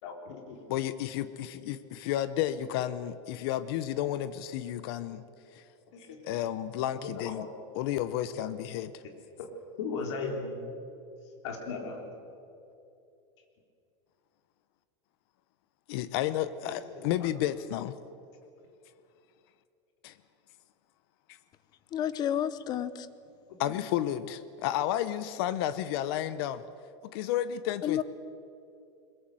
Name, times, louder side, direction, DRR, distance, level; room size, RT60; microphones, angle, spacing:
voice 1, 0.0-0.6 5.9-6.2 7.0-7.5 9.4-9.5 9.8-10.6 11.4-12.1 16.9-17.0 23.6-23.7, left 4 dB, 75° left, 3 dB, 3.9 m, -37 dB
voice 2, 0.7-5.2 5.5-5.6 6.2-7.5 7.8-9.0 15.9-17.9 20.0-20.1 23.6-26.6 27.1-28.0, left 12 dB, 55° left, 14 dB, 0.9 m, -32 dB
voice 3, 21.9-23.1 27.8-28.0, left 10 dB, 25° left, 16 dB, 0.8 m, -30 dB
22.0 x 21.0 x 7.8 m, 2.7 s
supercardioid pair, 165°, 15 cm